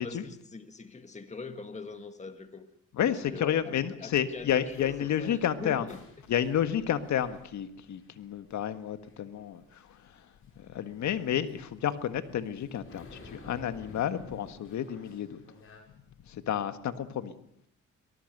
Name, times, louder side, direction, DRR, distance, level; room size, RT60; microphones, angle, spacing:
voice 1, 0.0-2.7 3.0-6.0, left 4 dB, 25° left, 8 dB, 1.8 m, -42 dB
voice 2, 2.9-5.9 6.3-10.3 10.6-15.4 16.3-17.3, left 10 dB, 70° left, 10 dB, 1.7 m, -31 dB
sound 1, 4.6-15.8, left 3 dB, 45° left, 6.0 m, -55 dB
24.0 x 19.0 x 6.7 m, 0.70 s
cardioid pair, 90°, 30 cm